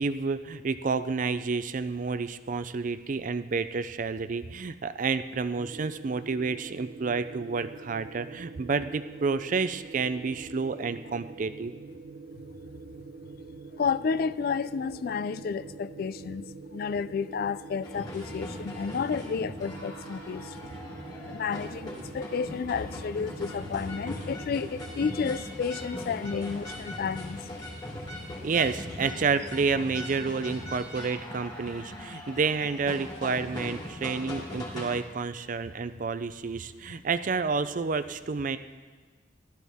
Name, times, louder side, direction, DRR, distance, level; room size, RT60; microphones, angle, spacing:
voice 1, 0.0-11.7 28.4-38.6, right 4 dB, 45° right, 0.4 m, -30 dB
sound 1, 5.6-25.3, right 4 dB, 75° right, 0.9 m, -45 dB
voice 2, 13.8-16.5 16.7-20.4 21.3-27.4, left 5 dB, 55° left, 0.3 m, -31 dB
sound 2, 17.8-35.0, left 1 dB, 25° left, 3.2 m, -40 dB
15.0 x 13.0 x 3.6 m
head